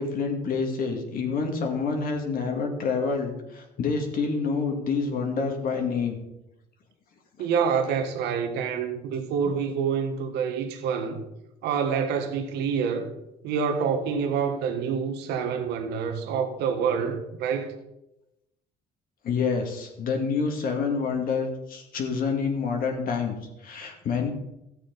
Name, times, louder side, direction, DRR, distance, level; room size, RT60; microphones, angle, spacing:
voice 1, 0.0-6.2 9.4-9.5 19.2-23.4 23.6-24.3, left 5 dB, 60° left, 2.4 m, -27 dB
voice 2, 7.4-11.2 11.6-13.1 13.4-17.8, right 6 dB, 85° right, 1.3 m, -27 dB
13.5 x 8.2 x 4.1 m
cardioid pair, 110°, 17 cm